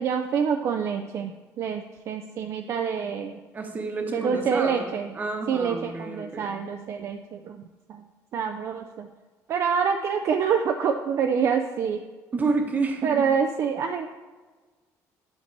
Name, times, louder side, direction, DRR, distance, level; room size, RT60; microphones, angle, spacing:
voice 1, 0.0-3.4 4.1-5.1 5.5-7.6 7.9-8.0 8.3-9.1 9.5-12.0 13.0-14.1, right 6 dB, 50° right, 4 dB, 0.4 m, -26 dB
voice 2, 3.5-6.5 12.3-13.3, right 3 dB, 25° right, 3 dB, 1.0 m, -29 dB
8.6 x 4.4 x 4.5 m, 1.3 s
cardioid pair, 135°, 6 cm